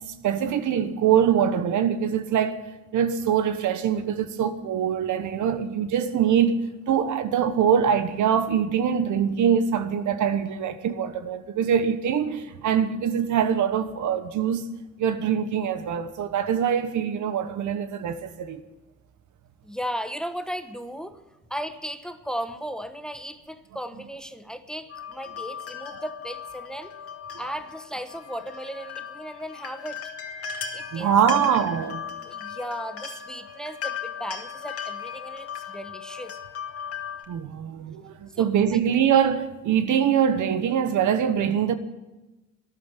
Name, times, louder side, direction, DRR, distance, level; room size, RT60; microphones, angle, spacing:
voice 1, 0.2-2.6 2.9-6.6 6.9-14.7 15.0-18.6 30.9-32.0 37.3-41.7, right 8 dB, 75° right, 1.3 m, -23 dB
voice 2, 19.6-21.2 21.5-26.9 27.4-30.0 30.7-31.4 32.2-36.4 38.4-38.8, equal, ahead, 1.1 m, -36 dB
sound 1, 24.9-37.3, left 7 dB, 50° left, 2.1 m, -37 dB
14.0 x 10.5 x 9.1 m
cardioid pair, 90°, 30 cm